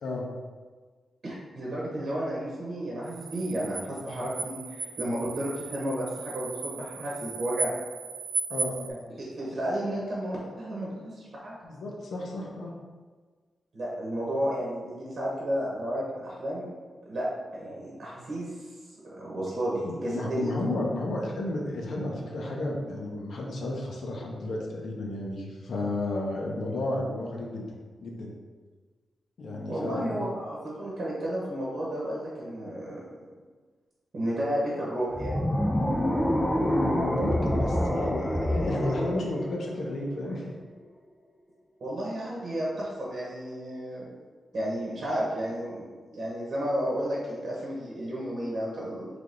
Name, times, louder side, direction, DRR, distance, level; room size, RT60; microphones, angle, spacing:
voice 1, 1.2-7.7 8.9-11.6 13.7-16.7 17.0-17.3 17.5-18.7 19.1-20.5 29.7-33.3 34.1-35.4 41.8-44.1 44.5-45.9 46.1-49.1, right 1 dB, 50° right, -5 dB, 1.0 m, -32 dB
sound 1, 3.0-8.9, right 4 dB, 75° right, 0.6 m, -36 dB
voice 2, 8.5-9.0 11.6-12.7 19.8-27.7 28.0-28.3 29.4-30.2 36.6-40.5, left 2 dB, 70° left, -1 dB, 0.8 m, -32 dB
sound 2, 35.1-40.4, equal, 5° left, 0.4 m, -27 dB
3.4 x 3.4 x 3.8 m, 1.4 s
wide cardioid pair, 150°, 0 cm